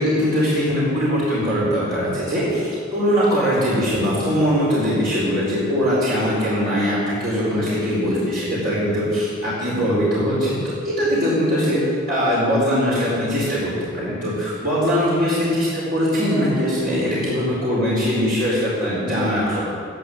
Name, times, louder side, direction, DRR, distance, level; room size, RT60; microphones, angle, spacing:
voice 1, 0.0-11.8 12.1-19.6, equal, 45° right, -8 dB, 4.5 m, -21 dB
15.0 x 11.0 x 7.9 m, 2.4 s
head